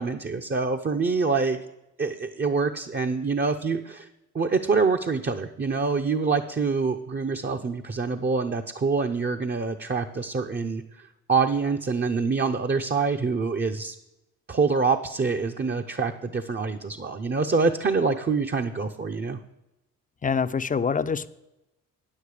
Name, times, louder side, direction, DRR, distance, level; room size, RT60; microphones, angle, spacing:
voice 1, 0.0-1.6 2.0-4.1 4.3-14.0 14.5-19.4, right 4 dB, 30° right, 4 dB, 0.7 m, -26 dB
voice 2, 20.2-21.3, left 6 dB, 25° left, 13 dB, 0.5 m, -25 dB
9.2 x 8.7 x 4.9 m, 0.93 s
supercardioid pair, 50°, 36 cm